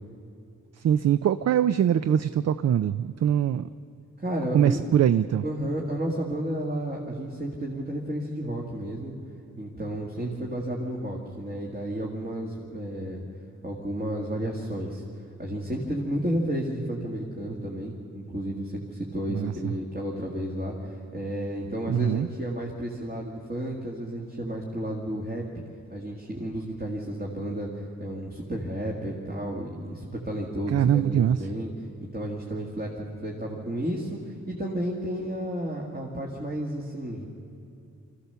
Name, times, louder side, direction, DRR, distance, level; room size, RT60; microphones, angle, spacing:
voice 1, 0.8-3.7 4.5-5.4 10.2-10.5 19.3-19.7 21.9-22.3 30.7-31.5, right 10 dB, 55° right, 13 dB, 0.4 m, -23 dB
voice 2, 4.2-4.9 5.4-9.2 9.6-13.2 13.6-15.0 15.4-25.4 25.9-31.7 32.1-37.3, right 1 dB, 30° right, -2 dB, 2.0 m, -32 dB
25.5 x 15.0 x 6.9 m, 2.6 s
wide cardioid pair, 145°, 31 cm